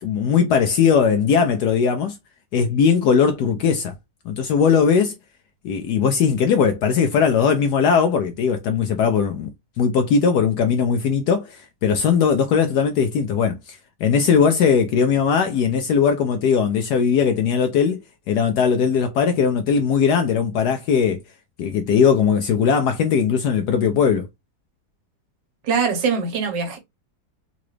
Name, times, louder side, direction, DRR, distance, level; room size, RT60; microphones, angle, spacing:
voice 1, 0.0-2.2 2.5-3.9 4.3-5.1 5.6-9.5 9.8-18.0 18.3-21.2 21.6-24.3, left 6 dB, 75° left, 1.1 m, -19 dB
voice 2, 25.6-26.8, right 5 dB, 90° right, 1.7 m, -22 dB
3.9 x 2.4 x 3.1 m
omnidirectional pair, 1.9 m